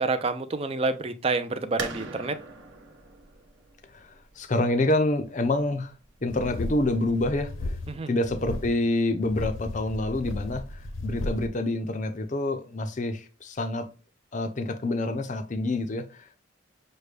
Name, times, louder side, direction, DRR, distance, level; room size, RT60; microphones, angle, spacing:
voice 1, 0.0-2.4 7.9-8.1, right 3 dB, 30° right, 0.4 m, -28 dB
sound 1, 1.8-7.3, right 3 dB, 65° right, 0.9 m, -42 dB
voice 2, 3.9-5.9 6.2-7.7 8.1-13.9 14.3-16.4, left 2 dB, 35° left, 0.5 m, -27 dB
sound 2, 6.3-8.0 8.2-8.7 9.2-11.5, left 2 dB, 75° left, 0.8 m, -35 dB
6.5 x 2.2 x 3.2 m
head